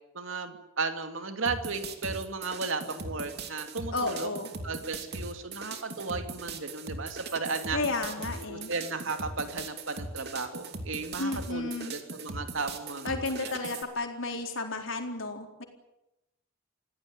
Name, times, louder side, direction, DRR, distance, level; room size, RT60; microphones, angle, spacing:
voice 1, 0.1-4.3 4.6-7.8 8.3-13.5, right 4 dB, 70° right, 7 dB, 2.7 m, -35 dB
sound 1, 1.5-13.8, right 3 dB, 50° right, 2.9 m, -39 dB
voice 2, 3.9-4.5 7.7-8.7 11.2-11.9 13.0-15.6, left 3 dB, 70° left, 3 dB, 4.1 m, -32 dB
27.0 x 16.5 x 9.8 m, 0.92 s
head